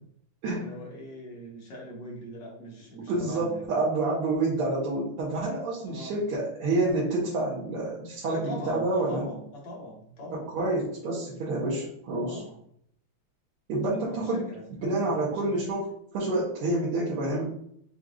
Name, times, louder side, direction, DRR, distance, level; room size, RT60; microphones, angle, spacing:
voice 1, 0.5-3.7 5.9-6.2 8.3-10.5 12.3-12.6 13.9-15.6, equal, 60° left, -2 dB, 1.5 m, -41 dB
voice 2, 3.1-9.2 10.3-12.4 13.7-14.5 14.8-15.9 16.1-17.4, right 2 dB, 85° right, -7 dB, 1.9 m, -28 dB
6.2 x 2.6 x 2.4 m, 0.69 s
omnidirectional pair, 2.4 m